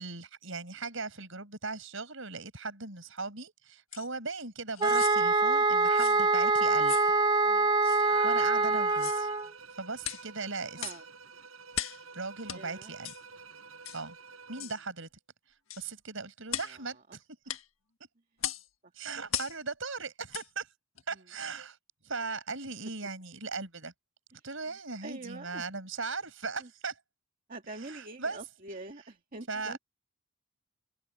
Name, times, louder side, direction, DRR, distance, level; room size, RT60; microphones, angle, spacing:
voice 1, 0.0-7.2 7.9-9.3 9.8-10.9 12.1-13.1 13.9-14.2 14.5-15.1 15.8-17.2 19.0-20.7 21.1-21.8 22.0-23.9 24.4-27.0 27.8-28.4 29.5-29.8, right 4 dB, 65° right, 7.0 m, -38 dB
sound 1, 3.9-4.1 4.7-5.2 6.0-6.2 6.9-7.1 7.8-8.0 8.9-9.2 10.0-10.3 10.8-11.0 11.7-12.0 12.5-12.6 13.0-13.2 13.8-14.0 14.6-14.8 15.7-15.9 16.5-16.8 17.5-17.7 18.4-18.7 19.3-19.6 20.3-20.5 21.0-21.1, left 11 dB, 70° left, 1.5 m, -37 dB
sound 2, 4.8-9.5, right 3 dB, 20° right, 1.0 m, -25 dB
Bowed string instrument, 8.0-14.8, right 5 dB, 80° right, 6.3 m, -50 dB
voice 2, 12.5-12.9 14.6-14.7 16.5-17.2 21.1-21.2 24.7-24.8 25.0-25.7 26.6-26.7 27.5-29.8, right 2 dB, 40° right, 2.2 m, -45 dB
head